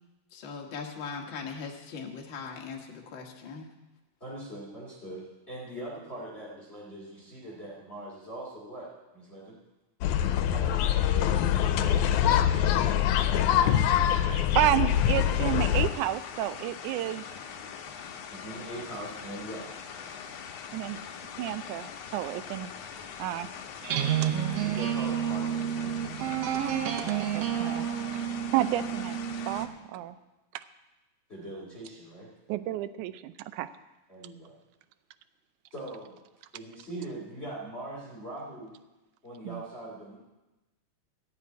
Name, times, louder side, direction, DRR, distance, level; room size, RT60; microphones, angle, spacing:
voice 1, 0.3-3.7, left 5 dB, 50° left, 0 dB, 1.8 m, -39 dB
voice 2, 4.2-9.5 10.4-12.9 18.3-19.7 24.6-26.5 31.3-32.3 34.1-34.6 35.7-36.2 36.5-38.7 39.2-40.2, right 1 dB, 20° left, -6 dB, 2.7 m, -42 dB
sound 1, 10.0-15.9, left 10 dB, 85° left, 2.1 m, -24 dB
voice 3, 14.2-17.2 20.7-21.0 21.4-23.5 24.2-24.3 26.9-27.9 28.5-29.2 29.5-30.2 32.5-33.7 39.5-39.6, right 14 dB, 90° right, 13 dB, 2.1 m, -31 dB
sound 2, 14.9-29.7, left 7 dB, 70° left, 2.0 m, -42 dB
sound 3, 23.8-29.8, right 10 dB, 70° right, 1.7 m, -30 dB
15.0 x 6.0 x 9.4 m, 1.1 s
omnidirectional pair, 3.4 m